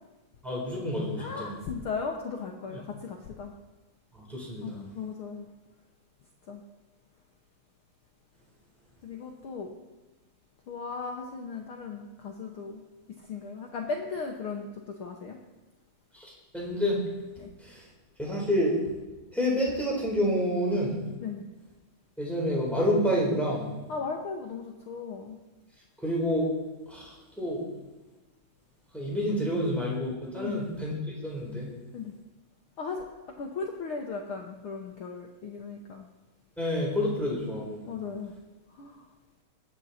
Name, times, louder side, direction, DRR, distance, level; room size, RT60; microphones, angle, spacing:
voice 1, 0.4-1.5 2.7-2.8 4.1-4.8 16.1-17.0 17.6-17.9 18.2-18.8 19.3-21.0 22.2-23.7 26.0-26.5 26.9-27.6 28.9-31.8 36.6-37.8, equal, ahead, -3 dB, 3.9 m, -28 dB
voice 2, 1.2-3.5 4.6-5.5 6.5-6.6 9.0-9.7 10.7-12.8 13.2-15.4 17.4-17.5 21.2-21.4 23.9-25.4 30.3-30.7 31.9-32.1 32.8-33.0 33.4-36.1 37.9-38.4 38.7-39.1, left 5 dB, 65° left, 2 dB, 1.3 m, -37 dB
20.5 x 9.1 x 4.3 m, 1.2 s
omnidirectional pair, 3.7 m